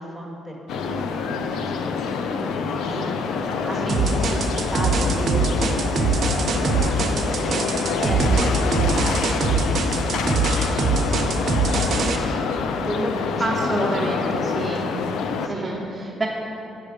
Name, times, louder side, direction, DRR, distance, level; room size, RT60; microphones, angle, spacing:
voice 1, 0.0-1.4 1.6-5.9 6.3-14.6 15.4-15.7, equal, 10° left, -1 dB, 1.6 m, -33 dB
sound 1, 0.7-15.5, left 5 dB, 80° left, 0.4 m, -26 dB
sound 2, 3.9-12.2, right 4 dB, 55° right, 0.8 m, -22 dB
voice 2, 13.4-14.8 15.5-16.3, right 2 dB, 20° right, -5 dB, 1.0 m, -28 dB
8.5 x 5.4 x 5.0 m, 2.9 s
cardioid pair, 90°, 0 cm